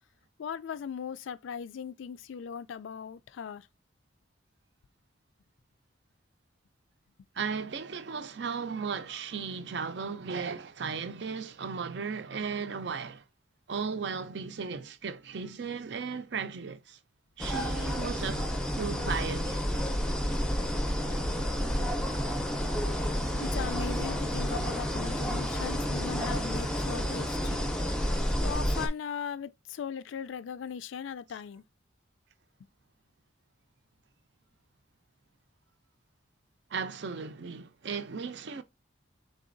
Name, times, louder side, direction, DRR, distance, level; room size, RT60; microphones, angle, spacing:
voice 1, 0.4-3.7 23.3-27.6 28.4-31.6, left 7 dB, 80° left, 0.3 m, -38 dB
voice 2, 7.3-13.2 13.7-17.0 17.4-19.6 36.7-38.6, right 5 dB, 65° right, 0.5 m, -36 dB
sound 1, 17.4-28.9, equal, 5° left, 0.5 m, -30 dB
4.1 x 3.8 x 2.5 m
head